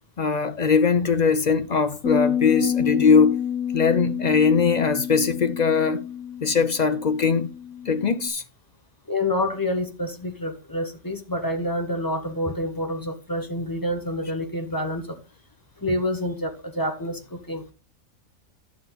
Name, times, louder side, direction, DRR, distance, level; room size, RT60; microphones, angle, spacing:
voice 1, 0.2-3.4 3.7-6.0 6.4-7.5 7.9-8.4, left 5 dB, 45° left, 0.6 m, -21 dB
sound 1, 2.0-8.3, left 9 dB, 70° left, 2.0 m, -28 dB
voice 2, 9.1-15.2 15.8-17.6, left 1 dB, 15° left, 1.2 m, -28 dB
11.0 x 6.9 x 4.0 m
omnidirectional pair, 1.5 m